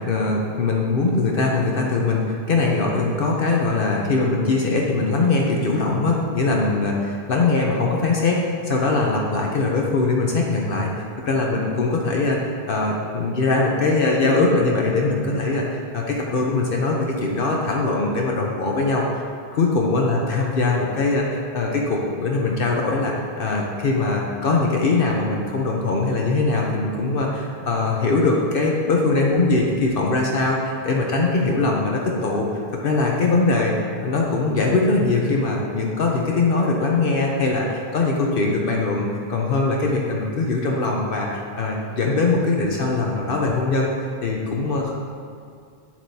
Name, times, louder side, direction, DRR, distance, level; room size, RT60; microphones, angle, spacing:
voice 1, 0.0-10.9 11.2-19.2 19.5-33.7 34.0-44.9, left 3 dB, 65° left, -1 dB, 0.9 m, -21 dB
8.7 x 7.4 x 2.7 m, 2.3 s
omnidirectional pair, 1.0 m